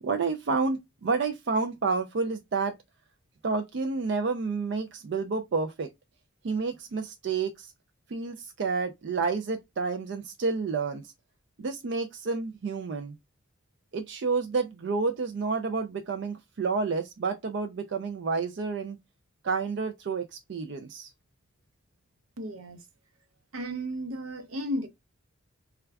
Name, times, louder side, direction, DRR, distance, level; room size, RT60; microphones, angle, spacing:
voice 1, 0.0-2.7 3.4-5.9 6.4-7.7 8.1-11.1 11.6-13.1 13.9-19.0 19.4-21.1, right 4 dB, 55° right, 0.4 m, -30 dB
voice 2, 22.4-22.8 23.5-24.9, equal, 85° right, 0.7 m, -34 dB
3.4 x 2.3 x 3.4 m
head